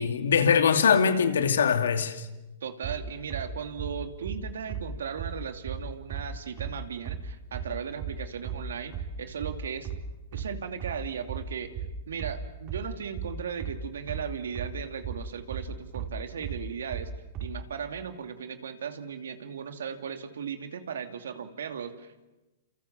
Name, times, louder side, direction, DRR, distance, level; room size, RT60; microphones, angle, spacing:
voice 1, 0.0-2.3, left 6 dB, 85° left, 2.6 m, -22 dB
voice 2, 2.6-9.9 10.3-11.7 12.1-17.1 17.4-22.3, right 7 dB, 85° right, 2.7 m, -37 dB
sound 1, 2.8-17.6, right 6 dB, 40° right, 4.7 m, -36 dB
28.0 x 28.0 x 7.3 m
hypercardioid pair, 135°, 0 cm